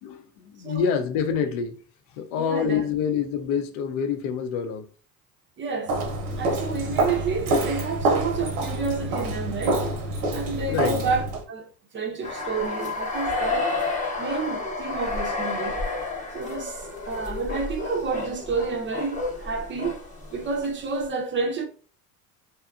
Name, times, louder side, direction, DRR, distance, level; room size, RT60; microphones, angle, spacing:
voice 1, 0.0-1.8 2.2-4.9 10.7-11.0, left 7 dB, 70° left, 0.5 m, -26 dB
voice 2, 2.4-2.9 5.6-5.9 6.4-9.8 10.3-13.7 14.2-15.8 16.3-20.0 20.3-21.7, right 4 dB, 25° right, 0.4 m, -30 dB
Walk footsteps, 5.9-11.4, right 2 dB, 80° right, 0.8 m, -26 dB
sound 1, 12.2-20.7, left 3 dB, 15° left, 0.7 m, -30 dB
2.7 x 2.3 x 2.3 m
hypercardioid pair, 85°, 46 cm